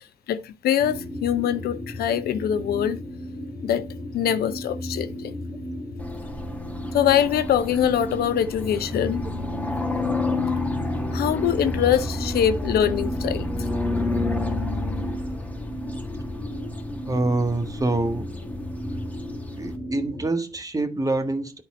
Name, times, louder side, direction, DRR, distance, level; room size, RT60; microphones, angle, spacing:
voice 1, 0.3-3.0 3.6-3.9 4.1-5.3 6.9-9.2 11.1-13.5, left 9 dB, 65° left, 0.7 m, -23 dB
sound 1, 0.8-20.3, left 1 dB, 85° left, 2.5 m, -34 dB
sound 2, 6.0-19.8, left 2 dB, 10° left, 2.0 m, -30 dB
voice 2, 17.1-18.3 19.6-21.6, right 2 dB, 20° right, 1.5 m, -25 dB
10.5 x 4.0 x 4.2 m
hypercardioid pair, 40°, 17 cm